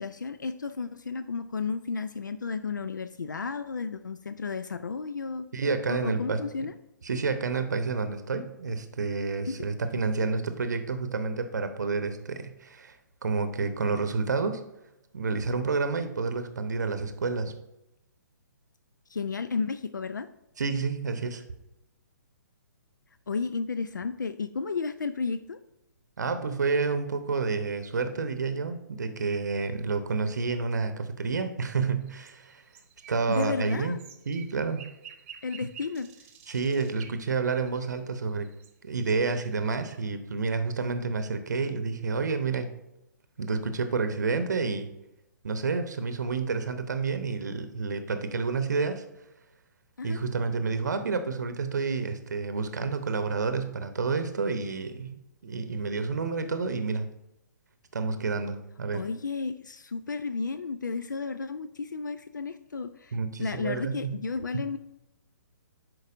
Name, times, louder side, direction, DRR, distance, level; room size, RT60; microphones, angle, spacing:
voice 1, 0.0-5.5 5.9-6.7 9.5-9.6 19.1-20.3 23.3-25.6 33.3-34.0 35.4-36.1 50.0-50.2 58.9-64.8, left 4 dB, 75° left, 11 dB, 0.4 m, -33 dB
voice 2, 5.5-6.4 7.0-14.6 15.1-17.5 20.6-21.4 26.2-32.6 33.1-34.0 34.3-34.9 36.5-38.5 38.8-42.7 43.4-44.9 45.4-49.0 50.0-57.1 57.9-59.1 63.1-64.2, right 4 dB, 65° right, 10 dB, 0.7 m, -29 dB
sound 1, 32.0-38.7 39.0-40.0, right 8 dB, 35° right, 0.9 m, -50 dB
10.5 x 4.6 x 2.5 m, 0.88 s
figure-of-eight pair, 125°, 10 cm